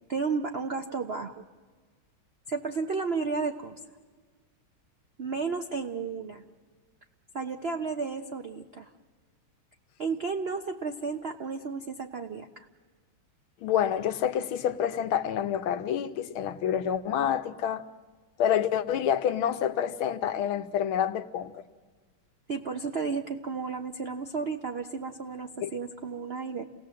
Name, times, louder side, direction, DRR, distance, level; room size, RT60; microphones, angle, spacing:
voice 1, 0.1-1.5 2.5-3.8 5.2-6.4 7.3-8.9 10.0-12.7 22.5-26.6, right 4 dB, 65° right, 0.6 m, -33 dB
voice 2, 13.6-17.8 18.4-21.6 25.6-25.7, left 9 dB, 85° left, 1.7 m, -28 dB
28.0 x 18.0 x 7.6 m
omnidirectional pair, 2.2 m